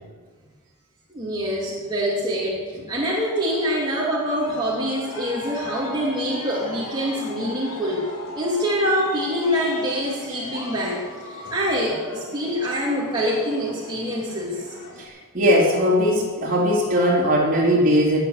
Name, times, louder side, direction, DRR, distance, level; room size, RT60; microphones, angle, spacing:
voice 1, 1.1-8.1 8.3-14.8, equal, 20° right, -6 dB, 2.8 m, -25 dB
Aircraft, 3.4-15.0, left 2 dB, 85° left, 3.5 m, -38 dB
voice 2, 15.0-18.2, equal, 40° right, -3 dB, 3.8 m, -19 dB
20.5 x 7.8 x 8.2 m, 1.5 s
head